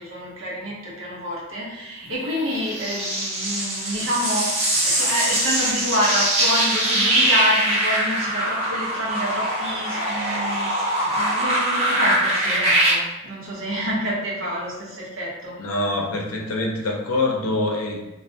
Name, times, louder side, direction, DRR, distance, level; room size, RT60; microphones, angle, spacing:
voice 1, 0.0-15.5, equal, 70° right, -5 dB, 0.8 m, -27 dB
sound 1, 2.3-12.9, right 1 dB, 30° right, 0.7 m, -22 dB
voice 2, 15.6-18.0, left 2 dB, 85° left, 0 dB, 0.5 m, -24 dB
2.5 x 2.1 x 2.7 m, 1.0 s
head